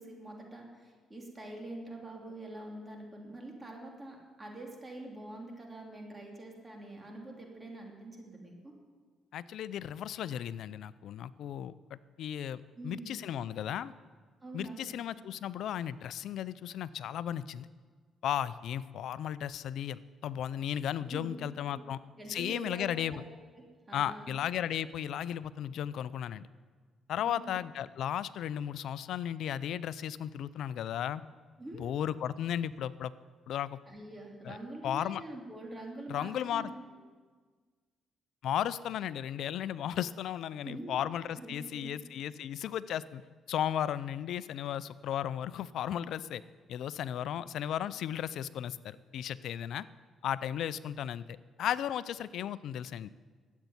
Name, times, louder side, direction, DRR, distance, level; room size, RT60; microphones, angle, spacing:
voice 1, 0.0-8.7 12.7-13.2 14.4-15.0 21.0-21.4 21.7-21.8 22.2-23.2 23.6-24.4 27.2-27.6 31.6-31.9 33.9-37.0 40.6-41.0 41.3-42.0, right 1 dB, 20° right, 1 dB, 2.9 m, -45 dB
voice 2, 9.3-13.9 14.5-17.7 18.2-22.0 22.3-23.2 23.9-26.5 27.1-31.2 31.8-33.1 33.5-33.8 34.5-34.6 34.8-35.2 36.1-36.7 38.4-43.2 43.5-46.4 46.7-49.9 50.2-53.1, left 10 dB, 75° left, 17 dB, 0.5 m, -35 dB
13.5 x 8.3 x 9.5 m, 1.5 s
cardioid pair, 90°, 0 cm